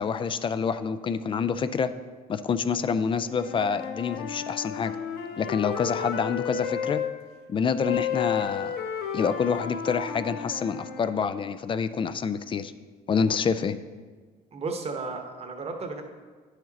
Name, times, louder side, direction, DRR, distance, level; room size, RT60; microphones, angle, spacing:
voice 1, 0.0-1.9 2.3-5.0 5.4-7.0 7.5-8.8 9.1-12.7 13.1-13.8, left 6 dB, 30° left, 12 dB, 0.4 m, -27 dB
Wind instrument woodwind instrument, 3.2-7.1 7.8-11.3, left 8 dB, 85° left, 0.7 m, -33 dB
voice 2, 14.5-16.0, right 3 dB, 35° right, 4 dB, 1.0 m, -34 dB
10.5 x 5.0 x 4.0 m, 1.5 s
cardioid pair, 110°, 17 cm